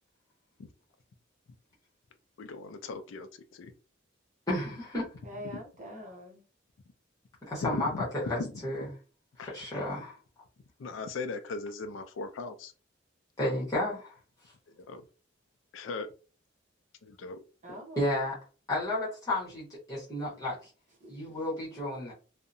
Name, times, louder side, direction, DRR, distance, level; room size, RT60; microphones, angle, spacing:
voice 1, 2.4-3.7 7.6-8.0 8.3-8.6 9.4-9.5 10.8-12.7 14.8-15.0 15.7-16.1 17.0-17.4, left 3 dB, 85° left, 8 dB, 0.4 m, -38 dB
voice 2, 4.5-5.0 7.5-8.9 9.4-10.2 13.4-14.2 18.0-18.3 18.7-20.7 21.1-22.1, left 1 dB, 20° left, -6 dB, 1.0 m, -32 dB
voice 3, 5.2-6.4 17.6-18.2 21.0-21.4, equal, 40° right, 0 dB, 0.8 m, -45 dB
2.7 x 2.1 x 2.5 m, 0.36 s
head